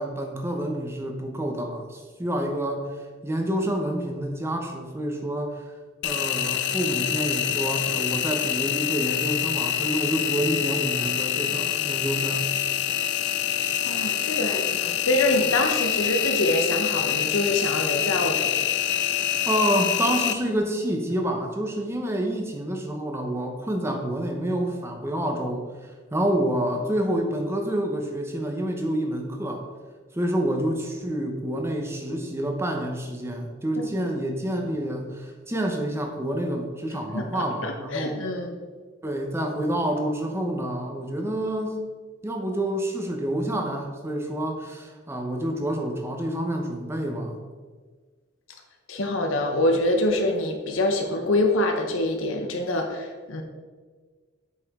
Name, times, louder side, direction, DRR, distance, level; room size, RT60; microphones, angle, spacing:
voice 1, 0.0-2.9 3.2-5.6 6.0-12.5 19.4-29.6 30.1-38.2 39.0-41.8 42.2-47.4, right 1 dB, 15° right, 2 dB, 0.8 m, -28 dB
Engine, 6.0-20.3, left 11 dB, 60° left, 0.4 m, -26 dB
voice 2, 13.8-18.5 33.8-34.1 37.1-38.5 48.9-53.4, left 1 dB, 90° left, 3 dB, 0.9 m, -25 dB
8.1 x 5.0 x 3.6 m, 1.5 s
head